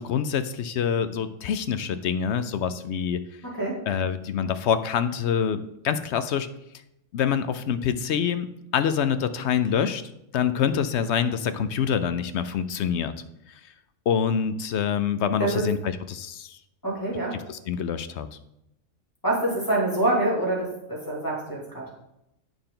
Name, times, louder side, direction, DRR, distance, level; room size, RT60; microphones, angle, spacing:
voice 1, 0.0-3.2 3.9-6.5 7.1-8.5 8.7-13.1 14.1-16.6 17.5-18.3, left 7 dB, 65° left, 11 dB, 0.8 m, -26 dB
voice 2, 3.4-3.8 15.4-15.7 16.8-17.4 19.2-21.9, right 2 dB, 15° left, -5 dB, 2.7 m, -26 dB
8.8 x 6.7 x 3.8 m, 0.83 s
omnidirectional pair, 1.4 m